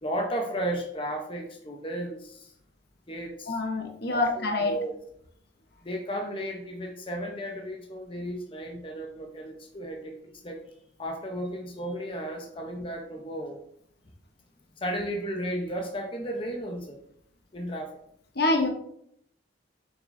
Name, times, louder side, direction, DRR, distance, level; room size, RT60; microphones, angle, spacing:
voice 1, 0.0-2.5 3.1-3.6 4.1-4.9 5.8-10.1 10.4-10.6 11.0-13.6 14.8-17.0 17.5-17.9, equal, 30° left, 1 dB, 0.9 m, -34 dB
voice 2, 3.5-4.8 18.4-18.7, left 2 dB, 55° left, 3 dB, 1.0 m, -26 dB
7.7 x 6.1 x 2.7 m, 0.70 s
head